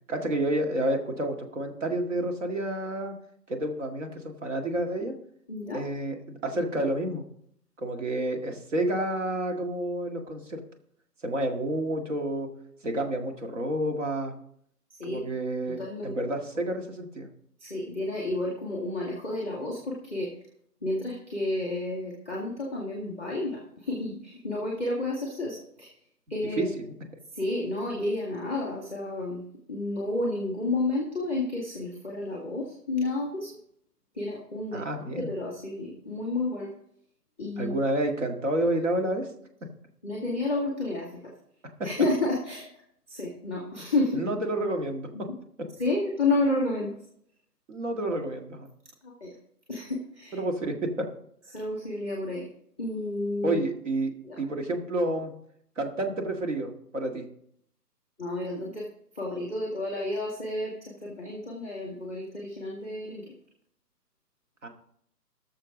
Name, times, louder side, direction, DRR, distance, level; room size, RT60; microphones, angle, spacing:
voice 1, 0.1-3.1 3.5-5.1 5.7-7.2 7.8-10.6 11.2-12.5 12.8-14.3 15.0-17.3 26.6-26.7 34.7-35.3 37.6-39.3 41.8-41.9 44.1-45.3 47.7-48.7 50.3-51.1 53.4-54.1 54.4-55.3 55.8-57.3 64.6-64.7, right 1 dB, 50° right, 3 dB, 2.0 m, -29 dB
voice 2, 5.5-5.8 15.0-15.2 15.7-16.1 17.6-20.3 20.8-25.9 26.3-26.7 27.3-33.5 34.1-34.8 35.2-36.7 37.4-37.7 40.0-41.2 41.8-42.6 43.1-44.2 45.1-45.4 45.8-46.9 49.0-49.3 49.7-50.4 51.5-52.5 52.8-53.6 54.2-54.4 58.2-58.8 59.1-63.3, left 2 dB, 10° right, -2 dB, 1.2 m, -31 dB
17.5 x 6.8 x 3.8 m, 0.67 s
hypercardioid pair, 170°, 48 cm